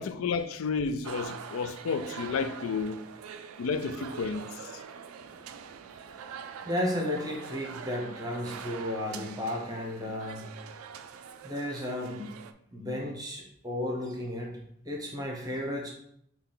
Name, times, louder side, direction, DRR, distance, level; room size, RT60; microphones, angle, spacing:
voice 1, 0.0-3.0 3.6-4.5, left 5 dB, 80° left, 0.4 m, -31 dB
sound 1, 1.0-12.5, right 6 dB, 85° right, 0.3 m, -44 dB
voice 2, 5.2-5.5 5.8-6.3 6.6-10.5 11.4-12.3 12.7-15.9, left 1 dB, 20° right, 0.8 m, -34 dB
5.4 x 2.4 x 3.8 m
head